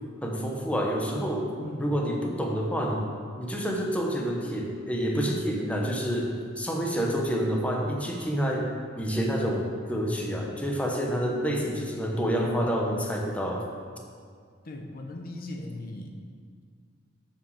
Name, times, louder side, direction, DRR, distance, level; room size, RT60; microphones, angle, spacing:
voice 1, 0.2-1.5 1.8-3.1 3.4-8.7 9.0-13.7, equal, 5° left, -1 dB, 0.9 m, -28 dB
voice 2, 1.6-2.0 14.6-16.1, left 1 dB, 50° left, 3 dB, 0.8 m, -38 dB
7.2 x 6.5 x 6.3 m, 2.1 s
head